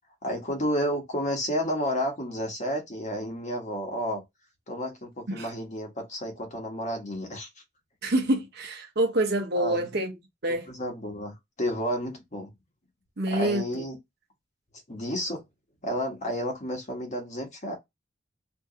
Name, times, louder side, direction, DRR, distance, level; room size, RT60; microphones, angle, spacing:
voice 1, 0.2-4.2 4.7-7.5 9.5-9.8 10.7-12.5 13.3-14.0 14.9-15.4 15.8-17.7, equal, 40° left, 1.3 m, -31 dB
voice 2, 8.0-10.7 13.2-13.8, right 1 dB, 60° right, 0.9 m, -27 dB
2.8 x 2.7 x 3.7 m
head